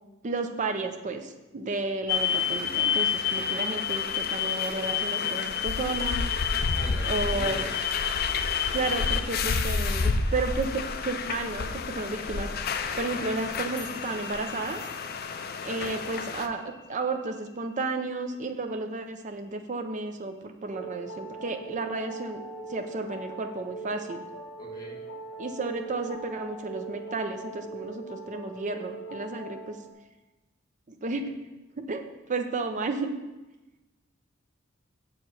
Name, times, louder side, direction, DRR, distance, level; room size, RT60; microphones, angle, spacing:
voice 1, 0.2-6.3 7.0-7.6 8.7-14.8 15.6-22.4 22.7-24.2 25.4-29.8 30.9-31.3 31.8-33.1, right 3 dB, 40° right, 6 dB, 0.6 m, -32 dB
sound 1, 2.1-16.5, left 6 dB, 50° left, 0.5 m, -29 dB
voice 2, 6.7-7.7 24.6-25.0, equal, 20° left, -4 dB, 1.7 m, -42 dB
sound 2, 13.8-20.3, left 4 dB, 5° left, 2.1 m, -49 dB
sound 3, 20.7-29.9, right 3 dB, 85° left, 1.0 m, -40 dB
6.5 x 4.7 x 5.7 m, 1.1 s
head